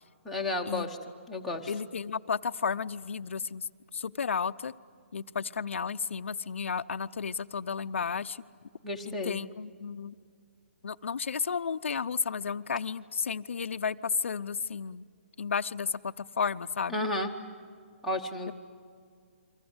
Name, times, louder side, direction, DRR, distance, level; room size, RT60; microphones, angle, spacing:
voice 1, 0.2-1.0 1.3-1.7 8.8-9.4 16.9-17.3 18.0-18.5, left 2 dB, ahead, 4 dB, 1.1 m, -32 dB
voice 2, 1.7-4.7 5.1-8.4 9.0-10.1 10.8-15.0 15.4-17.0, left 6 dB, 75° left, 10 dB, 0.7 m, -33 dB
29.5 x 24.5 x 8.0 m, 2.1 s
hypercardioid pair, 180°, 7 cm